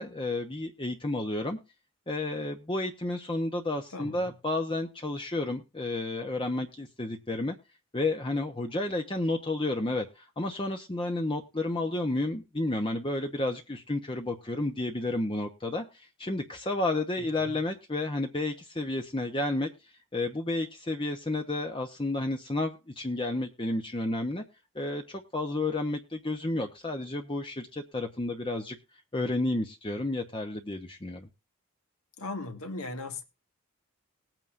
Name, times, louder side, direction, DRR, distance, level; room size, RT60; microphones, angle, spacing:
voice 1, 0.0-1.6 2.1-7.6 7.9-19.7 20.1-24.4 24.7-28.8 29.1-31.3, left 2 dB, 20° left, 0.8 m, -31 dB
voice 2, 3.9-4.3 17.2-17.6 32.2-33.2, left 2 dB, 80° left, 2.0 m, -38 dB
19.5 x 9.0 x 2.5 m
head